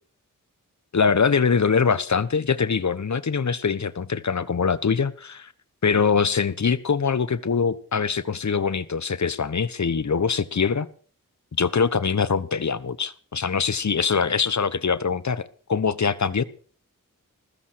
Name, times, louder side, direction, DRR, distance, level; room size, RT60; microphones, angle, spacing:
voice 1, 0.9-5.5 5.8-10.9 11.6-16.4, left 5 dB, 55° left, 17 dB, 1.3 m, -23 dB
20.0 x 15.0 x 4.8 m, 0.43 s
cardioid pair, 40°, 34 cm